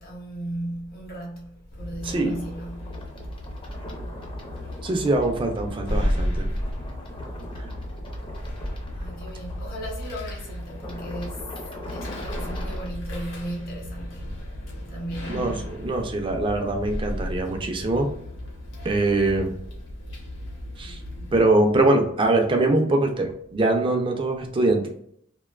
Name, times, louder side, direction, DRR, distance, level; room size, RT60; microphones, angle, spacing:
voice 1, 0.0-3.0 8.9-14.4 14.9-15.5, right 1 dB, 50° left, 0.9 m, -36 dB
sound 1, 1.7-21.4, equal, 85° left, 0.9 m, -34 dB
sound 2, 2.0-12.9, left 1 dB, 25° left, 0.5 m, -42 dB
voice 2, 2.0-2.4 4.8-6.4 15.3-18.1 18.8-19.5 20.8-21.0 21.3-24.9, right 2 dB, 25° right, 0.4 m, -23 dB
2.5 x 2.2 x 2.3 m
head